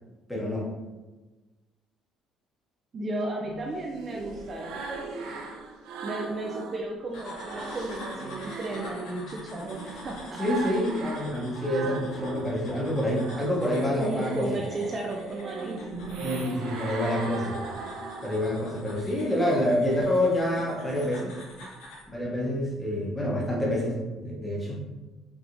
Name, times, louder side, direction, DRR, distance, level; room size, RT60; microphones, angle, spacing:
voice 1, 0.3-0.7 10.4-14.5 16.2-17.6 18.2-21.4 22.1-24.8, left 1 dB, 5° left, -4 dB, 0.9 m, -27 dB
voice 2, 2.9-5.1 6.0-10.4 14.0-16.1, right 2 dB, 25° right, 0 dB, 0.4 m, -34 dB
sound 1, 3.4-6.8 7.2-12.5 12.9-18.8, right 4 dB, 80° right, 0.6 m, -39 dB
sound 2, 7.1-22.1, left 1 dB, 85° left, 1.3 m, -46 dB
4.5 x 3.3 x 2.6 m, 1.2 s
cardioid pair, 170°, 0 cm